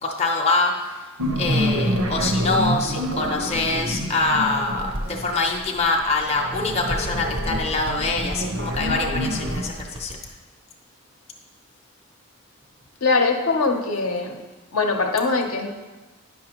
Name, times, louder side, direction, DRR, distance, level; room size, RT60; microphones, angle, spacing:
voice 1, 0.0-0.9 1.4-10.2, left 3 dB, 30° left, 0 dB, 0.6 m, -24 dB
sound 1, 1.2-5.5 6.2-9.6, equal, 85° right, 0.9 m, -27 dB
Bird, 2.5-6.1 6.5-10.3, equal, 25° right, 0.5 m, -36 dB
voice 2, 13.0-14.4 14.7-15.7, left 3 dB, 70° left, 3 dB, 0.7 m, -22 dB
9.5 x 5.7 x 2.9 m, 1.2 s
head